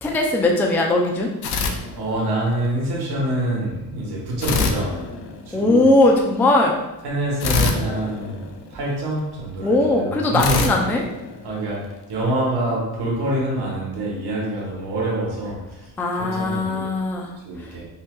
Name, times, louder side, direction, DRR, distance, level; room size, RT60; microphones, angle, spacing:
voice 1, 0.0-1.3 5.5-6.8 9.6-11.0 16.0-17.7, left 2 dB, 5° left, 1 dB, 0.3 m, -19 dB
sound 1, 1.4-2.6 4.4-5.8 7.4-9.1 10.4-11.9, left 5 dB, 80° left, 0.6 m, -26 dB
voice 2, 1.9-5.1 5.4-5.9 7.0-10.6 11.4-16.9 17.4-17.9, right 1 dB, 85° right, -3 dB, 1.3 m, -26 dB
5.4 x 2.3 x 2.2 m, 0.95 s
cardioid pair, 110°, 38 cm